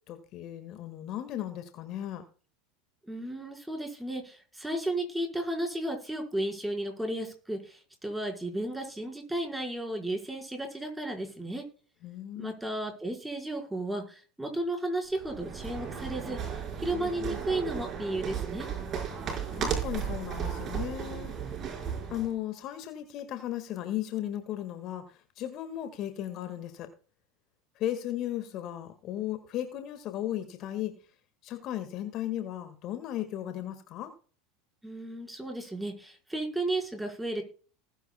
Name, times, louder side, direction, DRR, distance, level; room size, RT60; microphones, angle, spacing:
voice 1, 0.1-2.2 12.0-12.5 19.5-21.6 22.1-26.9 27.8-30.9 31.4-34.1, left 12 dB, 45° left, 8 dB, 1.8 m, -36 dB
voice 2, 3.1-11.6 12.4-18.7 34.8-37.4, right 1 dB, 5° right, 1 dB, 4.9 m, -34 dB
sound 1, 15.1-22.3, right 7 dB, 35° right, 5.3 m, -35 dB
19.5 x 9.2 x 2.3 m, 0.39 s
hypercardioid pair, 85°, 0 cm